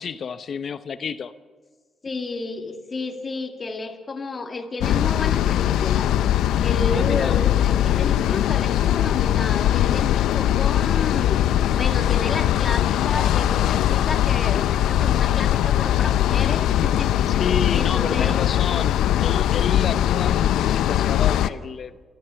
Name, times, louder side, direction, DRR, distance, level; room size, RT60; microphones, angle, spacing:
voice 1, 0.0-1.3 6.9-7.4 7.9-8.1 17.3-22.0, left 6 dB, 50° left, 12 dB, 0.7 m, -30 dB
voice 2, 2.0-6.1 6.6-11.4 11.8-18.5, left 3 dB, 35° left, 5 dB, 2.2 m, -31 dB
sound 1, 4.8-21.5, left 12 dB, 85° left, 0.6 m, -20 dB
29.0 x 13.5 x 7.0 m, 1.5 s
cardioid pair, 90°, 0 cm